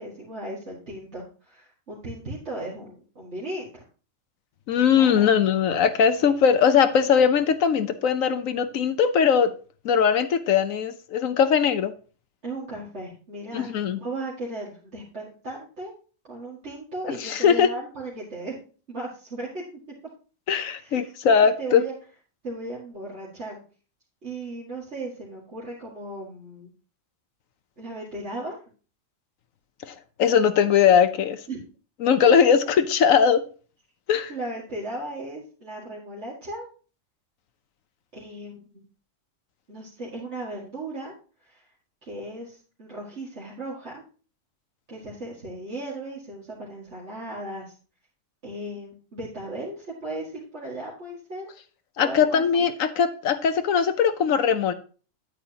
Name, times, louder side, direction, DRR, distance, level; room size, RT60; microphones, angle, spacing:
voice 1, 0.0-3.7 4.9-5.3 12.4-15.9 16.2-18.6 18.9-19.6 20.8-21.9 22.4-23.6 24.2-26.7 27.8-28.6 31.5-31.6 34.3-36.7 38.1-38.6 39.7-41.1 41.4-41.7 42.0-44.0 44.9-47.7 48.4-51.5 52.0-52.7, right 1 dB, 55° right, -5 dB, 2.3 m, -36 dB
voice 2, 4.7-9.5 9.8-11.9 13.5-14.0 17.2-17.7 20.5-21.8 29.8-31.4 32.0-33.4 34.1-34.3 52.0-54.7, left 7 dB, 80° left, 10 dB, 1.2 m, -20 dB
9.3 x 8.7 x 2.8 m, 0.37 s
omnidirectional pair, 1.4 m